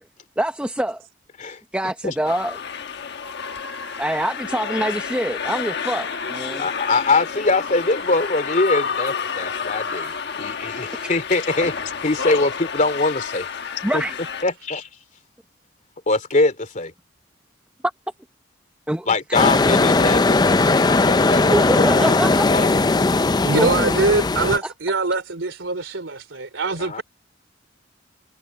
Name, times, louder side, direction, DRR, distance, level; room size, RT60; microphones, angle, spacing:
voice 1, 0.4-1.0 1.7-2.6 4.0-6.7 13.8-14.1 18.9-19.4 19.7-19.8 21.5-22.4 23.5-24.0 24.6-24.7, right 1 dB, 5° right, 1.0 m, -25 dB
sound 1, 2.2-14.4, left 6 dB, 60° left, 1.3 m, -29 dB
voice 2, 6.5-13.5 13.9-14.0 14.4-14.9 16.1-16.9 19.1-22.7 26.8-27.0, left 3 dB, 40° left, 2.9 m, -23 dB
sound 2, 19.3-24.6, left 3 dB, 20° left, 0.5 m, -18 dB
voice 3, 23.4-27.0, right 3 dB, 90° right, 3.0 m, -23 dB
head